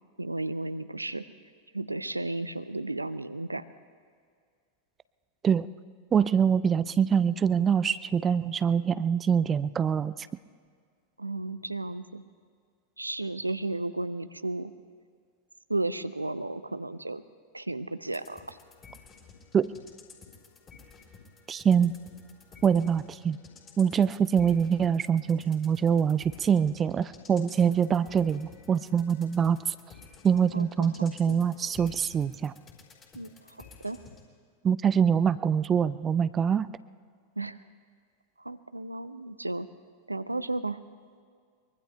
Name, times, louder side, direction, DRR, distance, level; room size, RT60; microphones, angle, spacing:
voice 1, 0.2-1.2 1.7-3.6 11.2-12.2 13.0-14.7 15.7-17.2 17.5-18.6 30.5-31.4 33.1-33.3 33.6-34.0 37.4-37.6 38.4-39.7 40.1-40.8, right 2 dB, 85° right, 13 dB, 0.5 m, -33 dB
voice 2, 6.1-10.1 19.5-19.7 21.5-21.9 22.6-23.4 23.8-29.8 30.2-32.5 34.6-36.7, right 7 dB, 20° right, 16 dB, 0.4 m, -24 dB
sound 1, 18.1-34.3, left 5 dB, 25° left, 3.8 m, -53 dB
24.0 x 22.5 x 2.3 m, 2.1 s
figure-of-eight pair, 90°, 0 cm